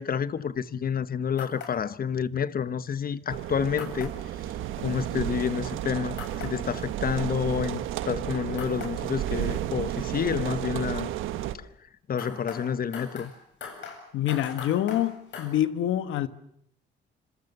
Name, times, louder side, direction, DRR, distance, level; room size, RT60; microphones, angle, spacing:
voice 1, 0.0-4.2 4.8-11.1 12.1-13.3, left 7 dB, 45° left, 1.1 m, -29 dB
sound 1, 1.4-1.7 3.8-4.1 6.2-6.5 8.6-8.9 12.2-15.5, left 6 dB, 65° left, 8.0 m, -40 dB
sound 2, 3.3-11.5, right 12 dB, 90° right, 1.3 m, -32 dB
voice 2, 13.8-16.3, left 12 dB, 85° left, 1.3 m, -27 dB
26.0 x 26.0 x 6.8 m
cardioid pair, 90°, 20 cm